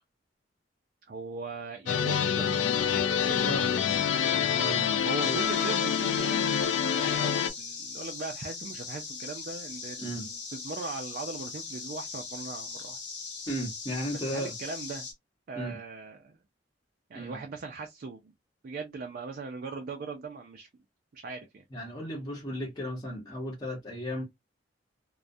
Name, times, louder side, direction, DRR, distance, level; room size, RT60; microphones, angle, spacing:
voice 1, 1.1-3.4 5.0-13.0 14.1-15.1 15.5-16.4 17.1-18.3 18.6-20.7 21.1-21.6, right 4 dB, 50° right, 0.4 m, -40 dB
sound 1, 1.9-7.5, left 8 dB, 85° left, 0.4 m, -26 dB
voice 2, 4.2-5.4 10.0-10.3 13.5-14.5 15.5-15.8 17.1-17.4 21.7-24.2, equal, 20° left, 0.9 m, -35 dB
sound 2, 5.2-15.1, left 4 dB, 70° left, 0.8 m, -40 dB
2.3 x 2.1 x 2.5 m
head